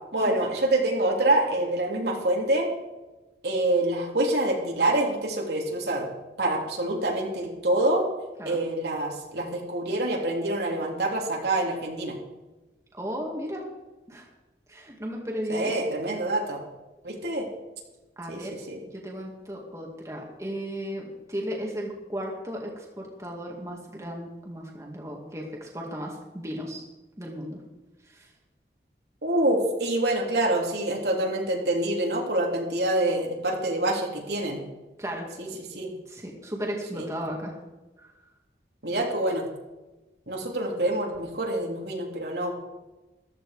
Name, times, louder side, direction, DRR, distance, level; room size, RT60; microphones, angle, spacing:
voice 1, 0.1-2.7 3.4-6.1 6.4-8.0 8.4-12.2 15.5-16.6 17.0-17.5 18.3-18.8 29.2-34.6 35.4-35.9 36.9-37.1 38.8-39.5 40.3-42.5, right 1 dB, 70° right, 0 dB, 3.1 m, -26 dB
voice 2, 12.9-13.6 14.1-14.3 14.7-15.7 18.2-18.5 18.9-26.8 27.2-27.6 28.1-28.3 35.0-35.3 36.1-37.5 38.0-38.1, equal, 15° right, -1 dB, 2.2 m, -35 dB
14.5 x 13.5 x 5.0 m, 1.1 s
head